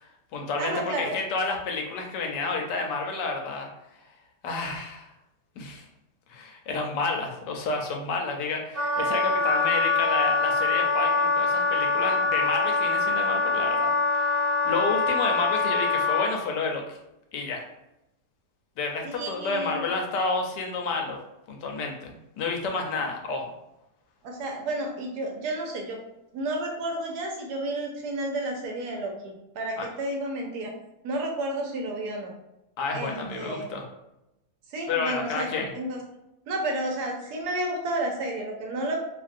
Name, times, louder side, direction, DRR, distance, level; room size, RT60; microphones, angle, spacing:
voice 1, 0.0-3.7 4.4-5.1 5.6-5.8 6.3-17.0 17.3-17.6 18.8-21.2 21.5-23.5 29.8-29.9 32.8-33.8 34.9-35.7, left 3 dB, 80° left, 2 dB, 1.2 m, -30 dB
voice 2, 0.6-1.2 19.0-19.9 24.2-26.0 26.3-30.7 31.0-32.3 32.9-33.7 34.7-36.0 36.5-39.0, right 1 dB, 75° right, 1 dB, 1.1 m, -31 dB
Wind instrument woodwind instrument, 8.7-16.3, left 3 dB, 40° right, 0.9 m, -24 dB
3.0 x 2.4 x 2.5 m, 0.89 s
omnidirectional pair, 1.9 m